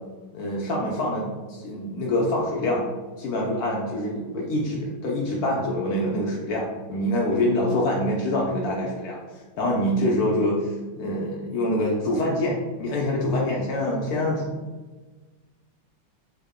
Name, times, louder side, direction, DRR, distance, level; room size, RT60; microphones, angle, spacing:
voice 1, 0.3-2.9 3.2-14.5, left 1 dB, 90° left, -3 dB, 0.8 m, -25 dB
3.6 x 2.0 x 3.5 m, 1.3 s
omnidirectional pair, 2.2 m